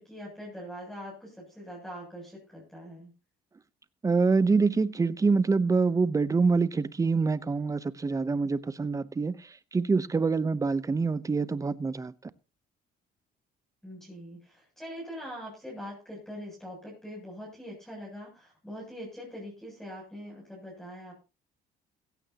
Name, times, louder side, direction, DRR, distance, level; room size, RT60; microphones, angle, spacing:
voice 1, 0.0-3.1 13.8-21.2, equal, 5° left, 7.9 m, -43 dB
voice 2, 4.0-9.4 9.7-12.1, right 4 dB, 20° right, 0.8 m, -25 dB
16.5 x 15.5 x 2.9 m
cardioid pair, 110°, 17 cm